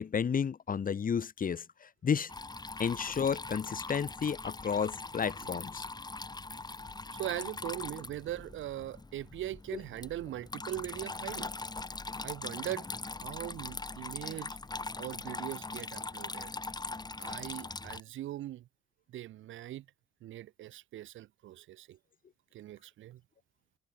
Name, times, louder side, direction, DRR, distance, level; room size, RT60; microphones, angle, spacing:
voice 1, 0.0-2.3 2.8-5.9, left 7 dB, 45° left, 2.5 m, -32 dB
Water tap faucet / Trickle dribble, 2.3-18.0, left 3 dB, 20° left, 6.2 m, -41 dB
voice 2, 7.1-11.5 12.2-12.9 13.2-14.6 15.0-16.5 17.2-18.7 19.1-19.8 20.2-22.0 22.5-23.2, right 13 dB, 80° right, 1.7 m, -40 dB
cardioid pair, 90°, 20 cm